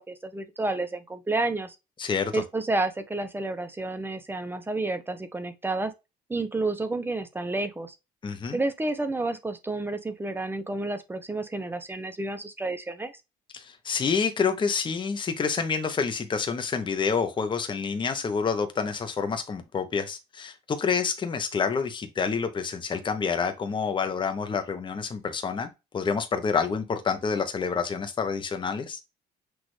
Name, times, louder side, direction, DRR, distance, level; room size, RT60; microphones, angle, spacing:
voice 1, 0.0-1.8 2.3-5.9 6.3-8.0 8.5-13.1, right 2 dB, 15° right, 0.7 m, -30 dB
voice 2, 2.0-2.4 8.2-8.6 13.5-29.0, left 5 dB, 30° left, 0.8 m, -28 dB
6.1 x 2.5 x 3.2 m
cardioid pair, 110°, 17 cm